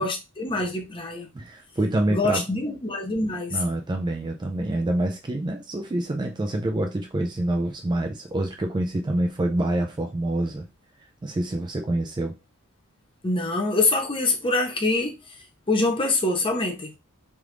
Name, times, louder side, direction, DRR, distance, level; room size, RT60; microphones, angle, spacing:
voice 1, 0.0-1.3 2.1-3.6 13.2-15.3 15.7-16.9, left 2 dB, 25° left, 0.6 m, -25 dB
voice 2, 1.3-2.4 3.5-10.6 11.2-12.3, right 1 dB, 20° right, 0.3 m, -26 dB
3.3 x 2.5 x 3.0 m
head